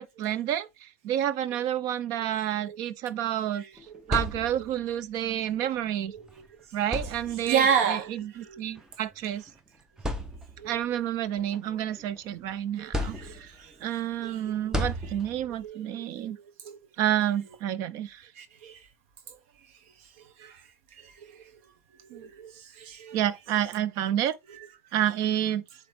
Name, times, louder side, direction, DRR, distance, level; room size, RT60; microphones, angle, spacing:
voice 1, 0.0-3.6 4.1-6.1 6.7-9.5 10.6-13.5 13.8-16.4 17.0-18.3 23.1-24.4 24.9-25.6, right 11 dB, 55° right, 0.6 m, -29 dB
voice 2, 3.5-4.0 6.1-6.5 7.4-8.1 8.4-8.6 10.6-10.8 12.8-13.7 14.2-14.6 15.6-16.3 16.6-16.8 18.4-18.8 20.4-20.6 21.0-21.4 22.1-23.2 24.5-24.7, right 7 dB, 75° right, 1.2 m, -32 dB
sound 1, 3.8-4.9 6.2-6.3 6.8-7.7 8.8-8.9 9.5-9.6 10.0-10.8 11.3-12.4 12.9-13.7 14.7-15.6, left 1 dB, 10° right, 0.8 m, -33 dB
8.6 x 3.1 x 3.5 m
supercardioid pair, 135°, 7 cm